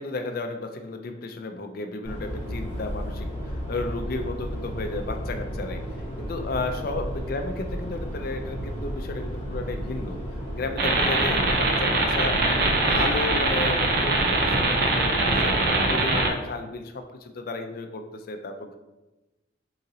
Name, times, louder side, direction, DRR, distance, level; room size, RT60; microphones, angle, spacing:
voice 1, 0.0-5.8 6.2-10.2 10.5-18.8, left 3 dB, 50° left, 5 dB, 0.4 m, -33 dB
sound 1, 2.0-15.8, equal, 25° right, 1.4 m, -33 dB
sound 2, 10.8-16.3, right 2 dB, 50° right, 0.5 m, -23 dB
3.9 x 3.9 x 2.7 m, 1.1 s
head